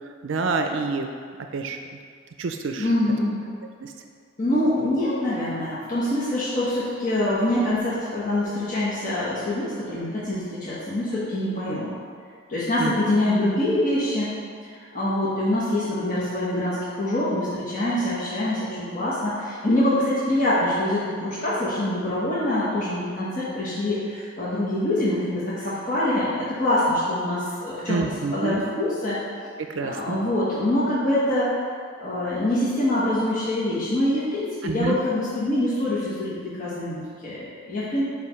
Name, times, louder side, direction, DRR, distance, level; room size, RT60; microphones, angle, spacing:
voice 1, 0.2-1.1 1.5-1.8 2.4-2.9 3.8-3.9 12.8-12.9 27.9-28.6 29.7-30.2 34.6-35.0, right 4 dB, 70° right, 5 dB, 0.4 m, -27 dB
voice 2, 2.8-3.4 4.4-11.9 12.5-14.3 14.6-29.2 29.8-31.5 32.0-38.0, left 1 dB, 40° left, -10 dB, 1.2 m, -25 dB
5.1 x 4.8 x 5.6 m, 2.1 s
head